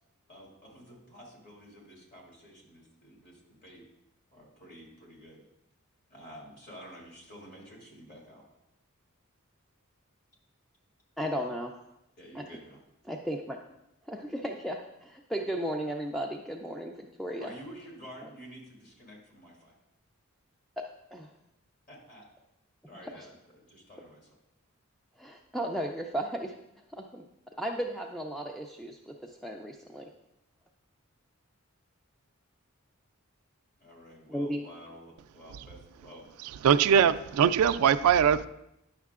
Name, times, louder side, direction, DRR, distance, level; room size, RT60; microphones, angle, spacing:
voice 1, 0.3-3.8 4.3-5.4 6.1-8.4 12.2-12.8 17.4-19.7 21.9-22.2 22.9-24.4 33.8-36.2 36.7-37.1, equal, 40° left, 2.5 m, -50 dB
voice 2, 11.2-11.7 12.3-12.4 13.1-13.6 14.1-17.5 20.8-21.3 25.2-26.5 27.0-27.2 27.6-30.0 34.3-34.6, equal, ahead, 0.3 m, -35 dB
voice 3, 36.6-38.5, right 8 dB, 85° right, 0.3 m, -21 dB
10.0 x 6.4 x 2.4 m
head